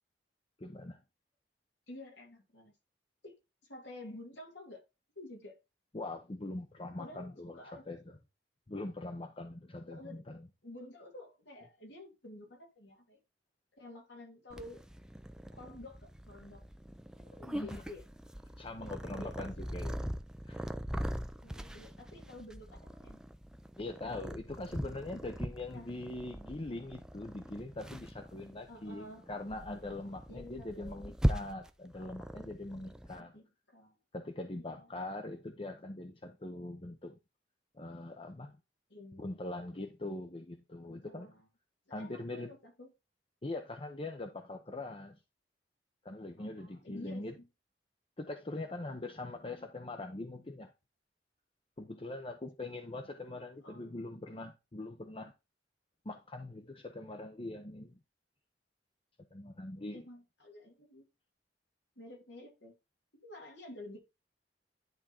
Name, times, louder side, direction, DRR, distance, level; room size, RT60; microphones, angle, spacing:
voice 1, 0.6-1.0 5.9-8.2 8.7-10.5 17.5-17.8 18.6-19.9 20.4-20.6 23.8-33.3 34.1-37.2 37.7-38.6 39.2-41.3 41.9-42.5 43.4-45.2 46.0-47.3 48.2-50.7 51.8-55.3 56.0-58.0 59.3-60.0, left 2 dB, 30° left, 0.8 m, -42 dB
voice 2, 1.9-2.7 3.2-3.3 3.6-4.8 5.1-5.6 7.0-8.0 9.9-10.2 10.6-13.2 13.7-14.8 15.5-16.6 17.3-18.0 18.8-20.0 21.4-23.2 25.7-25.9 28.7-29.2 30.3-31.0 33.2-34.0 34.6-34.9 38.9-39.4 40.9-41.4 42.0-42.9 46.4-47.4 53.6-54.1 59.9-61.0 61.9-62.7 63.2-64.0, left 1 dB, 80° left, 3.1 m, -50 dB
Purr, 14.5-33.2, equal, 5° right, 0.5 m, -40 dB
11.0 x 3.8 x 4.4 m
head